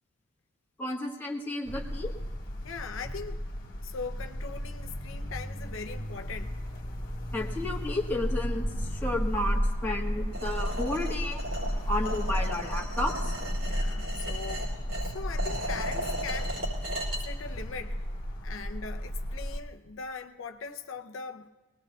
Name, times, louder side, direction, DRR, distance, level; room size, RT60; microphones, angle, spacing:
voice 1, 0.8-2.1 7.3-11.4 11.9-13.3, left 1 dB, 10° left, -1 dB, 1.4 m, -32 dB
sound 1, 1.6-19.6, equal, 45° left, 1.4 m, -33 dB
voice 2, 2.6-3.4 3.8-6.6 13.6-14.7 14.9-16.6 17.2-18.0 18.4-21.5, left 5 dB, 70° left, 6 dB, 0.7 m, -40 dB
sound 2, 10.3-17.2, equal, 80° right, 5.2 m, -37 dB
22.0 x 19.0 x 2.4 m, 1.3 s
head